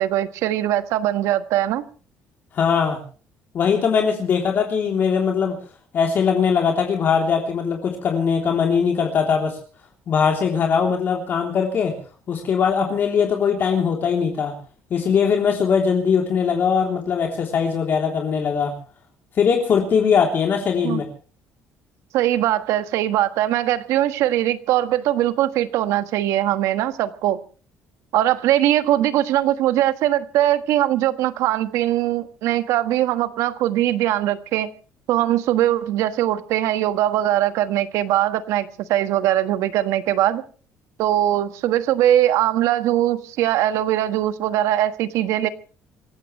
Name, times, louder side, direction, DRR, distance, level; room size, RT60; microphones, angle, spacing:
voice 1, 0.0-1.8 20.8-21.0 22.1-27.4 28.1-34.7 35.1-40.4 41.0-45.5, right 13 dB, 80° right, 1.6 m, -21 dB
voice 2, 2.5-3.0 3.5-5.5 5.9-9.6 10.1-11.9 12.3-14.5 14.9-18.7 19.4-21.0, left 6 dB, 40° left, 3.3 m, -20 dB
26.5 x 15.5 x 3.2 m
cardioid pair, 160°, 5 cm